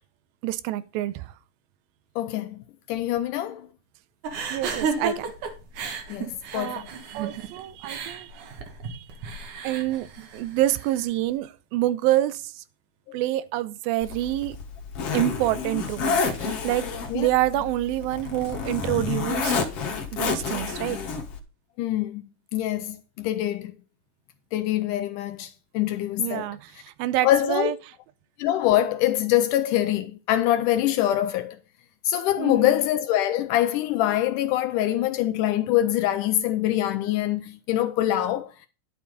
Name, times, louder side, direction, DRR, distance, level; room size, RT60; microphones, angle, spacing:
voice 1, 0.4-1.3 4.5-5.3 6.5-8.3 8.8-9.1 9.6-12.6 13.1-14.6 15.1-16.9 17.1-19.5 20.1-21.0 26.2-27.7 32.4-32.7, right 14 dB, 90° right, 2.5 m, -27 dB
voice 2, 2.2-3.7 6.1-6.9 13.1-13.2 17.1-17.3 21.8-22.2 22.5-23.7 24.5-26.5 27.2-27.7 28.4-31.6 32.1-38.7, left 13 dB, 80° left, 1.9 m, -24 dB
sound 1, 4.2-11.1, right 5 dB, 65° right, 2.8 m, -33 dB
Zipper (clothing), 14.0-21.4, left 5 dB, 55° left, 2.0 m, -29 dB
11.0 x 7.0 x 4.0 m
omnidirectional pair, 4.1 m